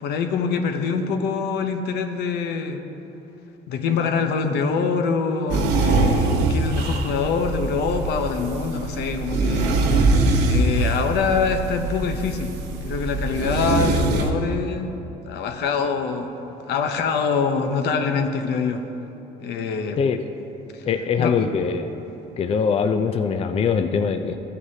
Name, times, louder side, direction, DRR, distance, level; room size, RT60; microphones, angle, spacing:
voice 1, 0.0-2.8 3.7-12.5 12.8-15.0 15.2-16.3 16.7-18.9 19.4-20.0 20.7-20.9 21.2-21.5, left 5 dB, 75° left, 6 dB, 0.8 m, -25 dB
sound 1, 5.5-14.3, right 3 dB, 85° right, 0.9 m, -22 dB
voice 2, 20.9-21.9 22.4-24.4, left 6 dB, 35° left, 8 dB, 0.4 m, -22 dB
14.5 x 8.1 x 2.8 m, 3.0 s
cardioid pair, 110°, 17 cm